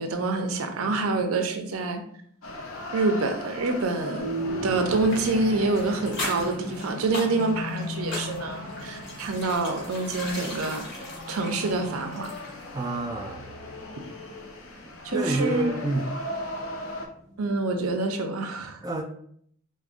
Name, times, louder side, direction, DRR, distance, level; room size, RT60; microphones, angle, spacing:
voice 1, 0.0-2.0 2.9-4.3 4.6-10.8 11.3-12.3 15.0-15.7 17.4-18.8, right 3 dB, 85° right, 5 dB, 0.5 m, -26 dB
sound 1, 2.4-17.1, left 1 dB, 75° left, 0.7 m, -39 dB
sound 2, 4.2-18.1, equal, 30° left, 1.0 m, -39 dB
sound 3, 5.1-12.7 12.9-13.0, left 2 dB, 60° left, 1.2 m, -38 dB
voice 2, 12.7-13.5 15.1-16.1 18.8-19.0, right 2 dB, 15° right, 2 dB, 0.3 m, -28 dB
4.7 x 2.1 x 2.5 m, 0.63 s
head